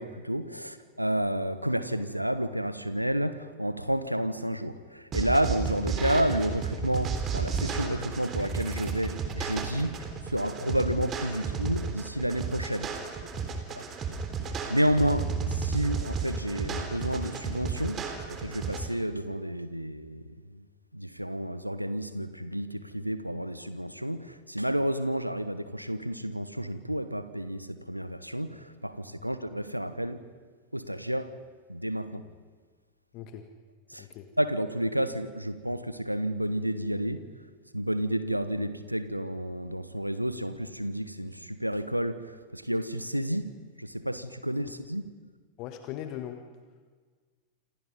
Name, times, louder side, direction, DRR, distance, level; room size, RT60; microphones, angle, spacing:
voice 1, 0.0-12.9 13.7-13.8 14.7-20.2 20.5-20.6 20.9-30.2 30.7-31.3 31.7-32.2 33.9-34.0 34.4-37.2 37.7-43.5 43.8-45.0, equal, 90° right, 12 dB, 1.3 m, -30 dB
sound 1, 5.1-18.8, right 5 dB, 25° right, 3.7 m, -33 dB
voice 2, 33.1-33.5 34.0-34.3 45.6-46.4, left 11 dB, 40° left, 7 dB, 1.7 m, -39 dB
27.5 x 27.5 x 5.5 m, 1.5 s
figure-of-eight pair, 90°, 0 cm